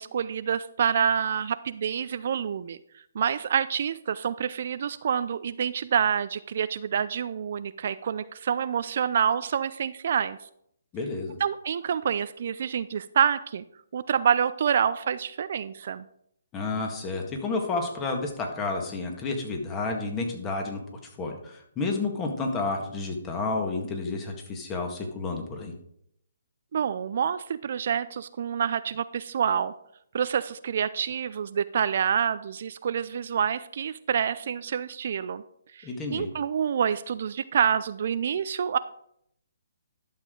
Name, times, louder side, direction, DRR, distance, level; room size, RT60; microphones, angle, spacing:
voice 1, 0.0-2.8 3.1-10.4 11.4-13.6 13.9-16.1 26.7-29.7 30.1-35.4 35.7-38.8, right 8 dB, 55° right, 14 dB, 0.4 m, -27 dB
voice 2, 10.9-11.4 16.5-20.8 21.2-25.7 35.8-36.3, left 3 dB, 20° left, 2 dB, 1.8 m, -30 dB
11.5 x 6.7 x 3.8 m, 0.72 s
figure-of-eight pair, 135°, 0 cm